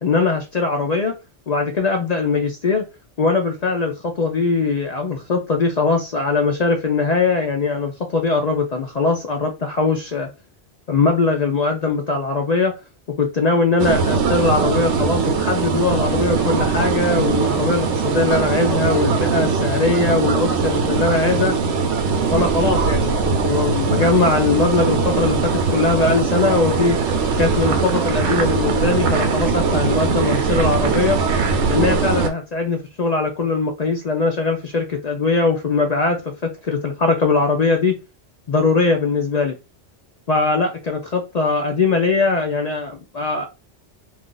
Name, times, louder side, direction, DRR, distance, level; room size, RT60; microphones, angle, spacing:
voice 1, 0.0-1.1 1.5-2.8 3.2-10.3 10.9-12.7 13.2-21.6 22.3-27.0 27.4-31.2 31.7-38.0 38.5-39.5 40.3-43.5, left 4 dB, 55° left, 0.5 m, -20 dB
sound 1, 13.8-32.3, right 5 dB, 80° right, 0.9 m, -20 dB
2.4 x 2.4 x 3.7 m
omnidirectional pair, 1.2 m